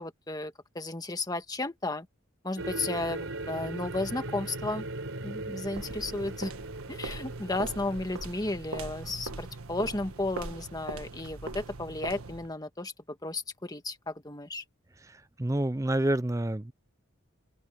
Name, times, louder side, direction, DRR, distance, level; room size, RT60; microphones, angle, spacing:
voice 1, 0.0-2.1 2.4-4.9 5.2-6.5 6.9-14.6, left 2 dB, 20° left, 1.5 m, -34 dB
sound 1, 2.6-9.9, right 2 dB, 70° right, 4.1 m, -39 dB
sound 2, 5.7-12.6, right 3 dB, 90° right, 1.6 m, -41 dB
voice 2, 15.4-16.7, right 1 dB, 15° right, 0.5 m, -27 dB
head